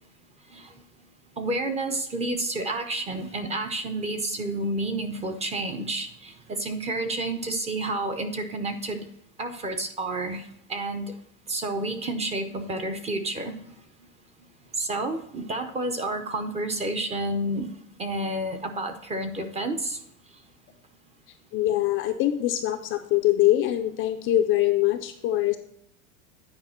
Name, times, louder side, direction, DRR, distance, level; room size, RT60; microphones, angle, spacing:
voice 1, 0.5-0.8 1.4-9.0 9.4-11.1 11.5-13.7 14.8-17.7 18.0-20.0, right 2 dB, 15° right, 7 dB, 0.6 m, -30 dB
voice 2, 21.5-25.6, left 14 dB, 30° left, 7 dB, 0.4 m, -23 dB
9.6 x 4.8 x 4.3 m, 0.73 s
supercardioid pair, 150°, 40 cm